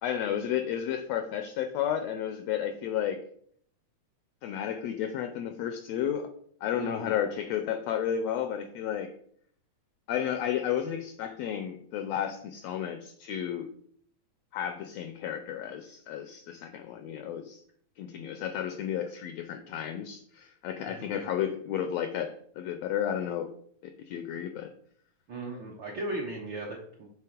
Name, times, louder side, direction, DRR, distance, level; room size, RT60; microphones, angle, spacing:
voice 1, 0.0-3.2 4.4-6.3 6.6-9.1 10.1-13.7 14.5-17.6 18.0-23.5 23.8-24.7, left 9 dB, 85° left, 7 dB, 1.5 m, -32 dB
voice 2, 6.8-7.1 20.9-21.2 25.3-27.1, right 2 dB, 70° right, -2 dB, 1.1 m, -37 dB
7.5 x 3.5 x 5.0 m, 0.64 s
omnidirectional pair, 3.5 m